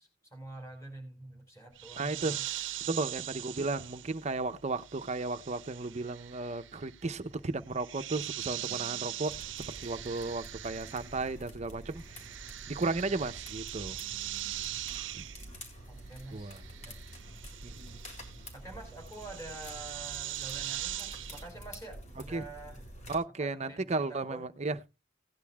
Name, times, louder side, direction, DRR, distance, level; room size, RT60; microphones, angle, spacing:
voice 1, 0.0-2.4 15.9-16.9 18.5-22.8 23.4-24.5, right 2 dB, 15° left, 4.9 m, -47 dB
sound 1, 1.8-11.5 11.7-21.5, right 13 dB, 80° right, 0.6 m, -42 dB
voice 2, 2.0-2.4 2.8-12.0 12.7-14.0 15.1-15.3 16.3-16.6 17.6-18.0 22.3-22.4 23.1-24.8, right 3 dB, 35° right, 0.7 m, -34 dB
sound 2, 9.3-23.2, equal, 40° left, 3.3 m, -48 dB
17.5 x 10.5 x 2.3 m
head